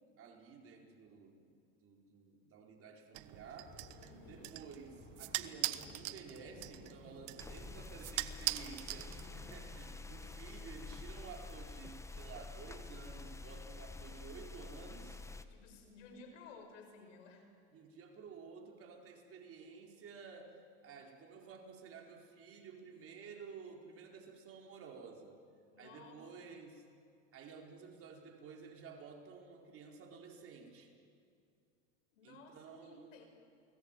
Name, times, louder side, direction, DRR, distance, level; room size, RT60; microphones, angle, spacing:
voice 1, 0.2-3.8 4.3-15.2 17.7-25.4 25.8-26.9 27.3-31.0 32.2-33.2, right 5 dB, 40° right, 1 dB, 4.7 m, -53 dB
sound 1, 3.1-9.6, right 18 dB, 60° right, 1.3 m, -42 dB
Thunder, 3.4-12.5 12.8-13.0 13.4-13.7 14.3-14.7, left 2 dB, 30° left, 6.8 m, -59 dB
voice 2, 4.0-4.5 15.5-17.5 25.7-26.5 32.1-33.3, left 4 dB, 85° left, 5 dB, 6.1 m, -56 dB
sound 2, 7.4-15.4, left 3 dB, 10° left, 1.4 m, -48 dB
29.0 x 20.5 x 9.2 m, 2.4 s
supercardioid pair, 115°, 37 cm